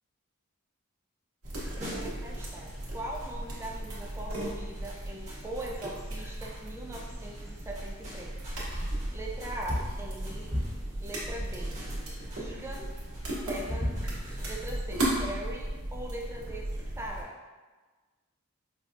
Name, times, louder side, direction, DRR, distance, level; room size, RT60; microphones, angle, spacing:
sound 1, 1.4-17.2, right 1 dB, 90° right, 1.0 m, -36 dB
sound 2, 1.5-14.6, equal, 35° right, 1.1 m, -41 dB
voice 1, 1.8-8.4 9.1-10.5 11.0-11.8 12.4-12.9 13.4-16.7 17.0-17.4, right 1 dB, 10° right, -1 dB, 0.3 m, -41 dB
4.8 x 2.2 x 2.5 m, 1.3 s
head